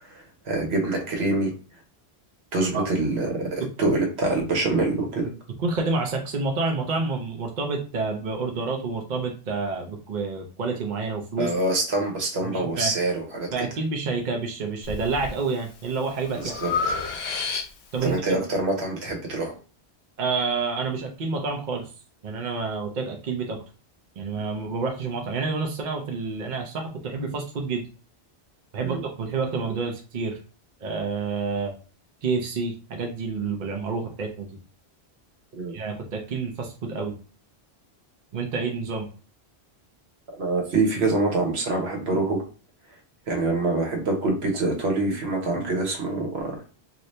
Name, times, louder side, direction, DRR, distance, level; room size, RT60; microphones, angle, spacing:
voice 1, 0.1-1.5 2.5-5.3 11.4-13.7 16.4-16.7 18.0-19.5 28.8-29.0 35.6-35.7 40.4-42.4 43.3-46.7, right 2 dB, 70° right, 1 dB, 1.2 m, -25 dB
voice 2, 5.6-11.5 12.4-12.9 13.5-16.5 17.9-18.4 20.2-21.9 22.2-23.6 24.2-27.9 28.7-30.4 30.8-31.7 32.2-34.5 35.7-37.1 38.3-39.1, right 4 dB, 50° right, 2 dB, 0.7 m, -28 dB
Breathing, 14.8-15.3 15.8-18.0, left 5 dB, 75° left, 0.9 m, -30 dB
2.7 x 2.7 x 3.2 m, 0.36 s
omnidirectional pair, 1.1 m